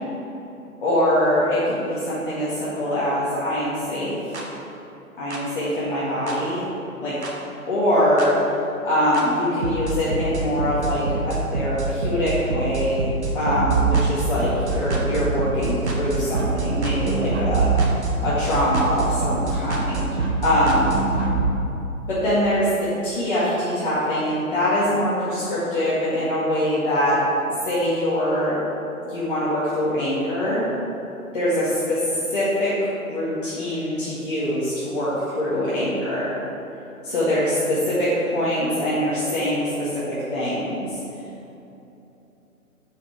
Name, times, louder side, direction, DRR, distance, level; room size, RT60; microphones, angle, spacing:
voice 1, 0.8-4.2 5.2-6.7 7.0-7.1 7.7-8.3 8.8-17.7 18.2-21.0 22.1-27.2 27.6-28.6 29.1-30.7 31.3-36.4 37.0-41.0, left 1 dB, 35° left, -10 dB, 1.9 m, -23 dB
sound 1, 4.3-4.4 5.3-5.4 6.3-6.4 7.2-7.3 8.2-8.3 9.1-9.2 9.6-21.4, right 3 dB, 50° right, 1.6 m, -24 dB
7.4 x 5.9 x 7.3 m, 2.9 s
hypercardioid pair, 170°, 44 cm